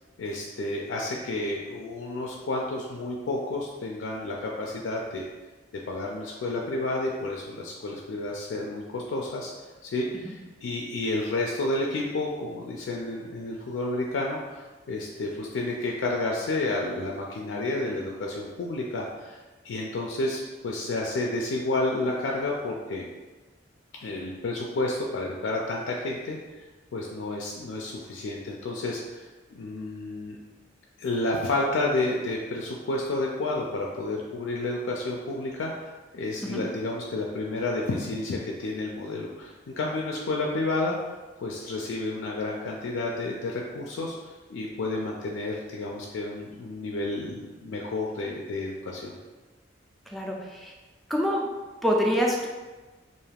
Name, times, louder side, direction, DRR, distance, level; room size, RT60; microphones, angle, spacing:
voice 1, 0.2-5.3 5.9-9.5 9.8-19.4 19.6-23.1 24.0-26.6 26.9-30.4 31.0-49.2, left 2 dB, 85° left, -1 dB, 0.3 m, -31 dB
voice 2, 50.1-50.7 51.1-51.5 51.8-52.5, equal, ahead, -1 dB, 0.3 m, -26 dB
2.5 x 2.3 x 3.2 m, 1.2 s
head